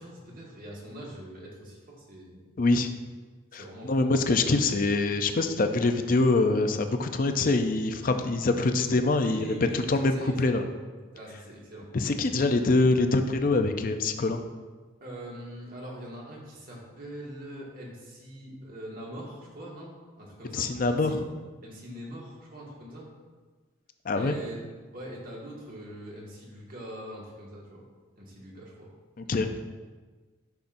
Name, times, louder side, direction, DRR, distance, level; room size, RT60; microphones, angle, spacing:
voice 1, 0.0-2.4 3.5-4.1 9.2-9.8 10.1-10.6 11.1-11.9 15.0-19.9 20.2-21.2 21.6-23.1 24.1-24.6 24.9-27.8 28.2-28.9 29.2-29.6, right 1 dB, 45° right, -3 dB, 1.7 m, -42 dB
voice 2, 2.6-2.9 3.5-10.6 11.9-14.4 20.5-21.2 24.1-24.4 29.3-29.6, left 3 dB, 45° left, 7 dB, 0.5 m, -24 dB
10.5 x 5.7 x 2.6 m, 1.4 s
head